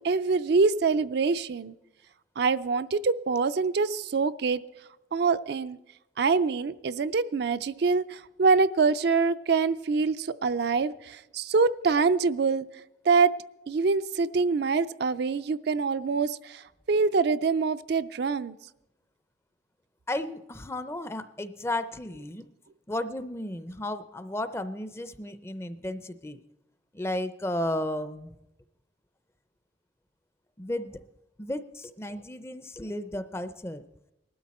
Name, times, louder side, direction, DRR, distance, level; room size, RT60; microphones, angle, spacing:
voice 1, 0.0-1.7 2.4-4.6 5.1-5.8 6.2-12.6 13.0-13.3 13.7-18.5, right 4 dB, 60° right, 12 dB, 0.4 m, -25 dB
voice 2, 20.1-22.5 22.9-26.4 26.9-28.4 30.6-31.0 31.4-33.8, left 1 dB, 15° left, 12 dB, 0.5 m, -33 dB
19.0 x 12.5 x 4.2 m, 0.90 s
head